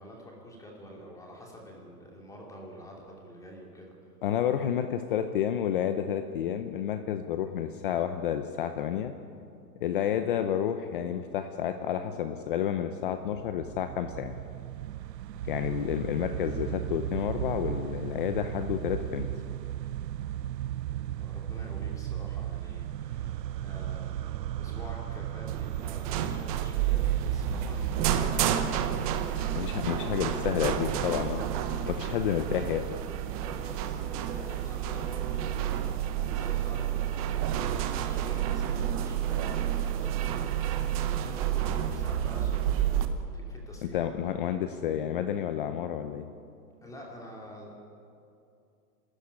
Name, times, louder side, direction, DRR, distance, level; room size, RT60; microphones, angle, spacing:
voice 1, 0.0-3.9 15.5-15.7 20.9-31.8 32.3-32.7 33.4-36.0 36.3-37.3 37.6-40.6 40.9-44.1 46.8-47.7, equal, 5° left, -1 dB, 2.7 m, -47 dB
voice 2, 4.2-9.1 9.8-14.4 15.5-19.3 29.6-31.4 31.9-32.8 43.9-46.2, left 9 dB, 35° left, 8 dB, 0.7 m, -30 dB
sound 1, 13.1-28.3, right 12 dB, 90° right, 0.7 m, -36 dB
sound 2, 25.5-43.1, right 10 dB, 20° right, 0.8 m, -30 dB
25.5 x 13.5 x 9.7 m, 2.5 s
hypercardioid pair, 155°, 48 cm